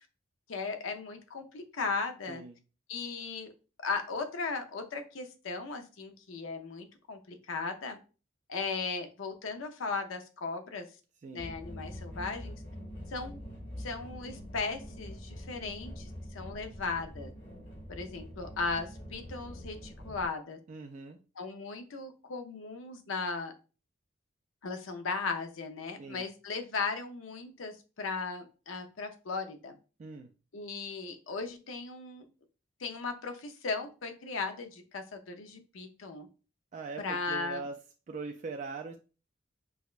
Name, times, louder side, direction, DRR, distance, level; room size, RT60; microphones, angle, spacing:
voice 1, 0.5-2.4 2.9-3.5 3.8-8.0 8.5-10.9 11.3-12.6 13.1-13.4 13.8-17.3 17.9-20.6 21.4-23.5 24.6-29.8 30.5-32.3 32.8-36.3 37.0-37.6, left 4 dB, 90° left, 6 dB, 0.6 m, -37 dB
voice 2, 2.3-2.6 11.2-11.5 20.7-21.2 26.0-26.3 30.0-30.3 36.7-37.8 38.1-39.0, right 4 dB, 40° right, 3 dB, 0.3 m, -41 dB
sound 1, 11.4-20.3, equal, 65° left, 1.6 m, -44 dB
4.9 x 2.2 x 2.4 m, 0.34 s
head